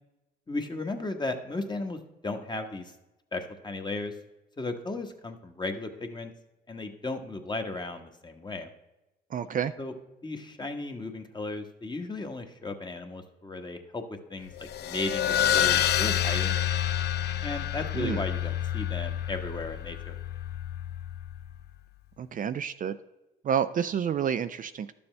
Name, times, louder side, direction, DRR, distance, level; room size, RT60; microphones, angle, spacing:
voice 1, 0.5-2.9 3.3-4.1 4.6-6.3 6.7-8.7 9.8-9.9 10.2-16.6 17.4-20.2, left 2 dB, 25° left, 5 dB, 1.3 m, -35 dB
voice 2, 9.3-9.7 17.9-18.2 22.2-23.0 23.4-24.9, right 8 dB, 45° right, 11 dB, 0.4 m, -29 dB
sound 1, 14.6-21.6, left 11 dB, 60° left, 0.4 m, -28 dB
11.5 x 7.0 x 3.3 m, 0.98 s
supercardioid pair, 70°, 19 cm